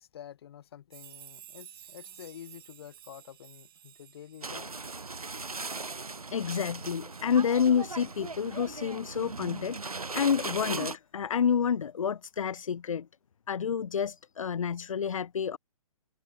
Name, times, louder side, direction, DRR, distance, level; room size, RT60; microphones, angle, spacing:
voice 1, 0.0-4.7, left 10 dB, 45° left, 4.2 m, -48 dB
sound 1, 0.9-7.8 8.2-8.3 9.6-9.7, right 12 dB, 40° right, 1.8 m, -54 dB
sound 2, 4.4-10.9, right 3 dB, 80° right, 0.8 m, -38 dB
voice 2, 6.3-13.1 13.5-15.6, left 7 dB, 65° left, 0.5 m, -29 dB
figure-of-eight pair, 125°, 18 cm